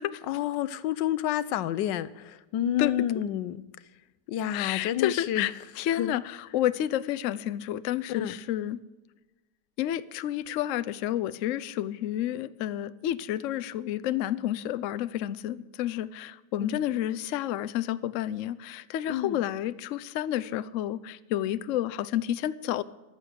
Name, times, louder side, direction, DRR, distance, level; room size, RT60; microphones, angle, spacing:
voice 1, 0.3-3.6 4.3-5.5 5.9-6.1 8.1-8.4 16.6-16.8 19.0-19.4, left 11 dB, 85° left, 16 dB, 1.3 m, -29 dB
voice 2, 4.5-5.5 5.8-8.8 9.8-22.8, left 12 dB, 70° left, 16 dB, 0.7 m, -30 dB
14.5 x 11.0 x 6.7 m, 1.1 s
omnidirectional pair, 1.9 m